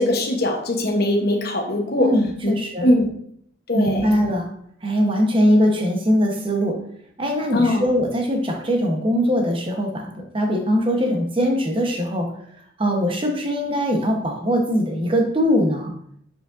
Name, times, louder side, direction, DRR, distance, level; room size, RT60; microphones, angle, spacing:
voice 1, 0.0-2.1 2.4-2.5 2.8-3.1 3.7-4.1 7.5-7.8, left 1 dB, 55° left, 2 dB, 1.0 m, -20 dB
voice 2, 2.0-2.9 3.7-4.5 4.8-6.8 7.2-12.3 12.8-15.9, equal, 30° right, 2 dB, 1.0 m, -21 dB
7.5 x 5.0 x 2.6 m, 0.66 s
head